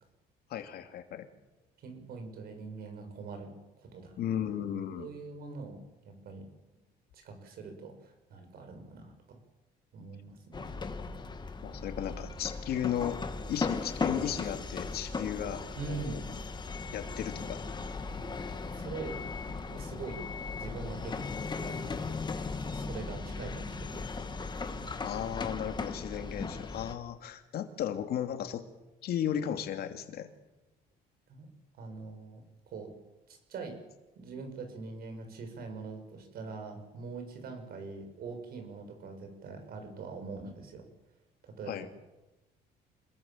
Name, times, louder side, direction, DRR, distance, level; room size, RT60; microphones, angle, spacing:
voice 1, 0.5-1.3 4.2-5.1 11.6-13.2 13.5-16.2 16.9-17.6 25.0-28.6 29.0-30.3 41.7-41.9, left 10 dB, 70° left, 7 dB, 2.7 m, -35 dB
voice 2, 1.8-4.2 5.0-6.5 7.1-9.4 9.9-10.8 15.7-16.2 18.8-19.2 19.5-22.0 22.5-24.1 24.6-24.8 31.3-31.5 31.7-32.9 33.3-33.8 34.1-40.9 41.5-41.8, right 4 dB, 65° right, 6 dB, 7.0 m, -43 dB
sound 1, 10.5-27.0, left 4 dB, 25° left, 2.2 m, -37 dB
27.0 x 20.5 x 7.5 m, 1.1 s
cardioid pair, 110°, 17 cm